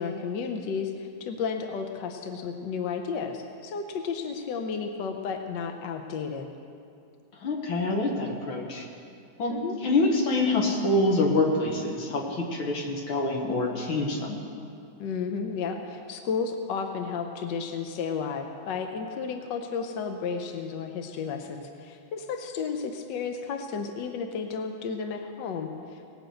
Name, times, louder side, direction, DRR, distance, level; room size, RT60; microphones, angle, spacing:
voice 1, 0.0-6.5 9.5-9.8 15.0-26.2, left 5 dB, 70° left, 4 dB, 1.4 m, -33 dB
voice 2, 7.4-8.8 9.4-14.4, left 2 dB, 85° left, 0 dB, 2.5 m, -26 dB
18.5 x 6.3 x 7.9 m, 2.4 s
omnidirectional pair, 2.2 m